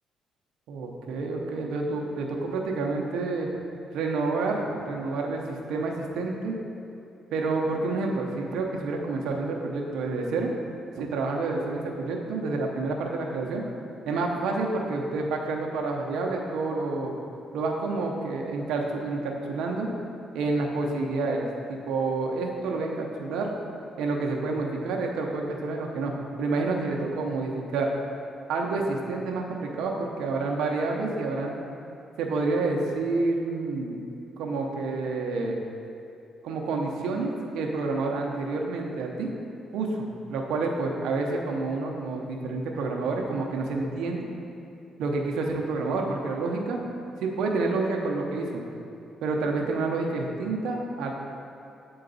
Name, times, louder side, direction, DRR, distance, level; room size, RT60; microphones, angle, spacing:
voice 1, 0.7-3.5 3.9-6.6 7.3-10.5 11.0-13.6 14.1-17.1 17.5-19.9 20.3-23.5 24.0-27.9 28.5-31.6 32.2-34.0 34.4-35.6 36.4-39.3 39.7-44.3 45.0-46.8 47.2-48.6 49.2-51.1, right 3 dB, 85° right, 0 dB, 0.7 m, -29 dB
7.7 x 3.9 x 4.0 m, 2.7 s
cardioid pair, 90°, 0 cm